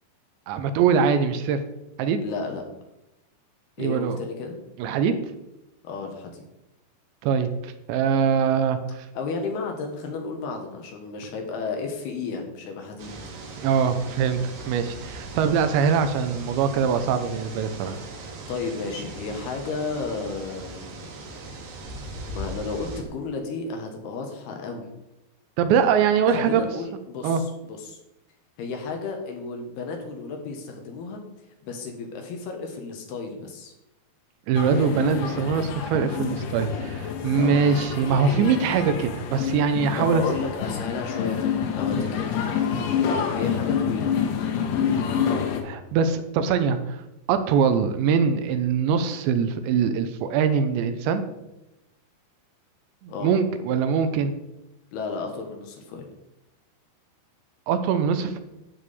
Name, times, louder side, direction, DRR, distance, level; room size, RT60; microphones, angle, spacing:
voice 1, 0.5-1.6 2.0-2.2 3.8-4.2 4.8-5.2 7.2-9.1 13.6-14.4 14.7-18.0 25.6-26.6 27.2-27.4 34.5-40.2 41.9-42.1 45.6-47.0 47.3-51.2 53.0-54.3 57.7-58.4, right 6 dB, 80° right, 9 dB, 3.1 m, -23 dB
voice 2, 2.2-2.6 3.8-4.6 5.8-6.4 9.1-13.1 18.5-21.1 22.0-24.9 26.3-28.0 28.6-31.2 31.6-33.7 37.3-37.6 40.0-42.6 43.3-44.1 53.1-53.4 54.9-56.1, left 4 dB, 65° left, 3 dB, 3.1 m, -33 dB
sound 1, 13.0-23.0, right 2 dB, 55° right, 2.8 m, -39 dB
sound 2, 34.6-45.6, left 7 dB, 90° left, 3.8 m, -27 dB
11.5 x 4.8 x 8.4 m, 0.92 s
omnidirectional pair, 5.3 m